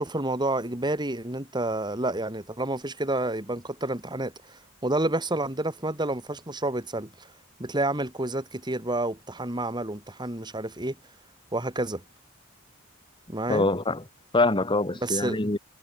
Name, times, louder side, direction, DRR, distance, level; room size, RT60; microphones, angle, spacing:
voice 1, 0.0-7.1 7.6-11.0 11.5-12.0 13.3-13.7 15.0-15.6, right 2 dB, 20° right, 3.3 m, -29 dB
voice 2, 13.5-14.0 14.3-15.6, left 2 dB, 25° left, 1.8 m, -24 dB
head